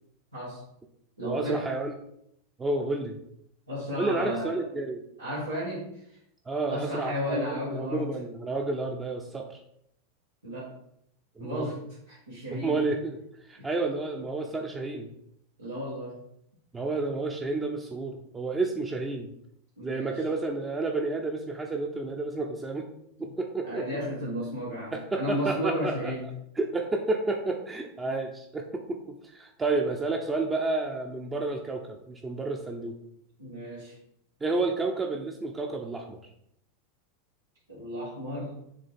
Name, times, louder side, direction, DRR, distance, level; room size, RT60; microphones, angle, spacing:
voice 1, 0.3-0.6 1.2-1.6 3.7-4.6 5.2-6.2 6.7-8.1 10.4-10.7 11.4-12.8 13.6-13.7 15.6-16.2 19.8-20.2 23.6-26.3 33.4-34.0 37.7-38.5, equal, 90° right, -7 dB, 1.5 m, -33 dB
voice 2, 1.2-1.9 2.6-3.2 3.9-5.0 6.5-9.6 11.4-11.7 12.5-13.2 13.4-15.1 16.7-19.3 19.8-22.9 23.2-23.9 24.9-26.1 26.6-33.0 34.4-36.2, right 3 dB, 15° right, 2 dB, 0.7 m, -30 dB
6.9 x 3.2 x 4.4 m, 0.75 s
figure-of-eight pair, 90°, 0 cm